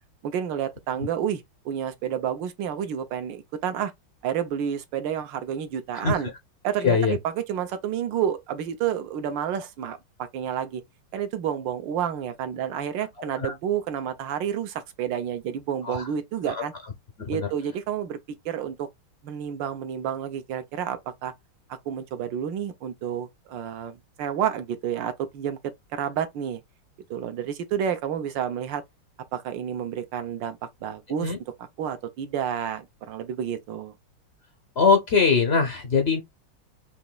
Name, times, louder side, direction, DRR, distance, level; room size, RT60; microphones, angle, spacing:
voice 1, 0.2-3.9 4.2-6.3 6.6-10.8 11.1-16.7 17.3-18.2 18.4-18.9 19.2-21.3 21.7-25.6 25.9-26.6 27.1-28.8 29.3-31.3 31.8-33.9, right 9 dB, 70° right, 1.3 m, -30 dB
voice 2, 5.9-6.3 6.8-7.2 13.4-13.5 15.8-16.1 16.5-16.7 17.2-17.5 31.2-31.4 34.8-36.2, left 5 dB, 75° left, 0.5 m, -22 dB
5.2 x 2.9 x 2.2 m
omnidirectional pair, 2.3 m